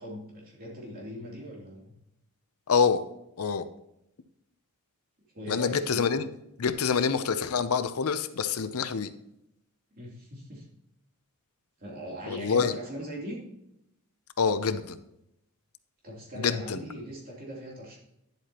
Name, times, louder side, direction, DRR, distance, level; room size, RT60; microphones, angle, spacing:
voice 1, 0.0-1.9 5.3-6.1 9.9-10.6 11.8-13.4 16.0-18.0, equal, 40° right, -4 dB, 3.1 m, -40 dB
voice 2, 2.7-3.0 3.4-3.6 5.5-6.3 6.6-9.1 12.3-12.7 14.4-15.0 16.4-16.8, left 5 dB, 75° left, 11 dB, 0.6 m, -26 dB
10.5 x 7.9 x 2.9 m, 0.82 s
head